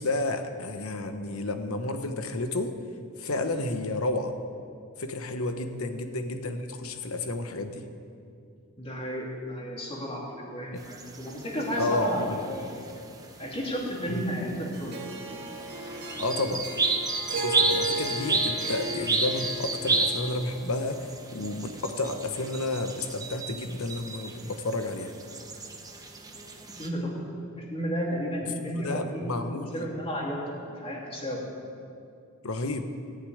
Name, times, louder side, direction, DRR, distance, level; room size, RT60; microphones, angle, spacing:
voice 1, 0.0-2.7 3.2-4.4 5.0-7.9 10.7-10.8 11.8-12.4 14.1-14.3 16.2-16.6 17.3-25.1 28.7-29.9 32.4-32.8, left 2 dB, 80° left, 8 dB, 1.0 m, -31 dB
voice 2, 8.8-12.2 12.5-12.7 13.4-15.0 26.7-27.3 27.7-30.4 30.7-31.4, equal, 25° left, -3 dB, 2.7 m, -33 dB
sound 1, 10.8-26.9, right 3 dB, 15° right, 1.0 m, -33 dB
Harp, 14.7-21.1, right 1 dB, 50° right, 1.8 m, -36 dB
14.5 x 6.9 x 9.2 m, 2.5 s
head